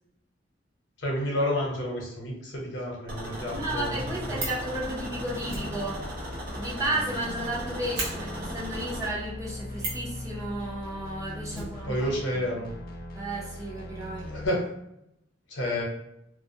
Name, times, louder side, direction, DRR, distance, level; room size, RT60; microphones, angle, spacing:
voice 1, 1.0-4.4 11.5-12.7 14.3-14.6 15.5-15.8, left 1 dB, 70° left, -2 dB, 0.8 m, -30 dB
sound 1, 3.1-9.1, equal, 55° right, 0.7 m, -38 dB
voice 2, 3.5-6.0 6.5-12.4 13.1-14.3, right 1 dB, 20° right, -5 dB, 0.6 m, -33 dB
sound 2, 3.6-14.5, left 1 dB, 50° left, 0.3 m, -40 dB
Fire, 4.3-4.7 5.4-7.2 7.5-7.6 7.9-8.1 9.7-10.1 11.5-12.4 12.7-12.8 13.0-13.1, right 2 dB, 75° right, 1.1 m, -36 dB
2.3 x 2.1 x 2.7 m, 0.81 s
head